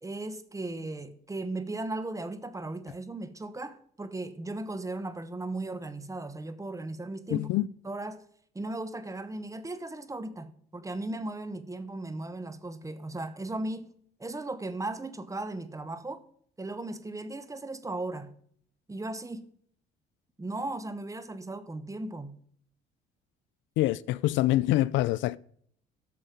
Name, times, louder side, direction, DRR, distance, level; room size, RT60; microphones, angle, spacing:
voice 1, 0.0-8.2 8.5-13.9 14.2-16.3 16.6-18.3 18.9-19.4 20.4-22.4, right 2 dB, 15° right, 1.0 m, -37 dB
voice 2, 7.3-7.7 23.8-25.4, left 16 dB, 75° left, 0.4 m, -25 dB
11.5 x 6.6 x 5.2 m
supercardioid pair, 75°, 20 cm